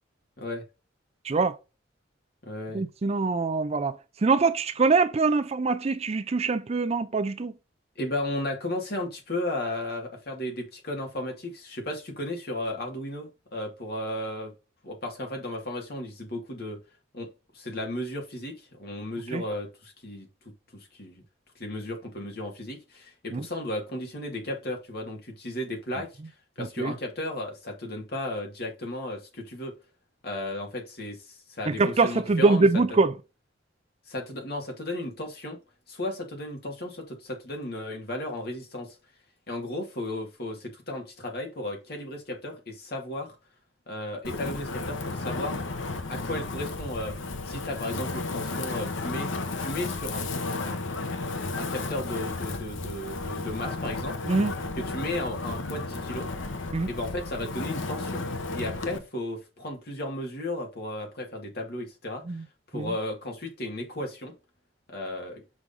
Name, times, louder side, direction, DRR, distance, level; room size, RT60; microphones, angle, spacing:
voice 1, 1.2-1.6 2.7-7.6 19.3-19.4 23.3-23.5 26.6-26.9 31.7-33.1 54.3-54.5 56.7-56.9 62.2-62.4 62.7-62.9, right 3 dB, 30° right, 0.4 m, -24 dB
voice 2, 2.4-2.8 8.0-14.5 14.8-16.8 17.1-17.3 17.5-20.3 20.7-21.2 21.6-29.7 30.2-33.0 34.1-35.6 35.9-39.0 39.5-43.4 43.9-45.6 46.1-49.3 49.6-50.9 51.5-54.3 54.8-56.3 56.8-58.2 58.5-62.2 62.7-64.3 64.9-65.4, left 1 dB, 55° left, 2.0 m, -34 dB
Wind, 44.2-59.0, left 3 dB, 75° left, 0.9 m, -33 dB
6.4 x 3.7 x 5.2 m
head